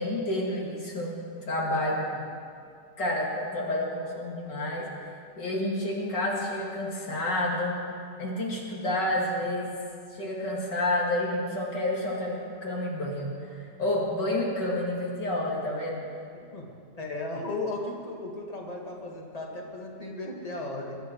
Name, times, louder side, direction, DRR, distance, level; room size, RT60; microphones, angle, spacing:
voice 1, 0.0-2.1 3.0-4.9 5.4-7.8 8.2-9.7 10.1-16.0, left 1 dB, 85° left, -3 dB, 3.2 m, -29 dB
voice 2, 16.3-16.7 17.0-21.0, left 2 dB, 20° left, -2 dB, 2.0 m, -36 dB
22.0 x 10.5 x 4.7 m, 2.4 s
omnidirectional pair, 1.8 m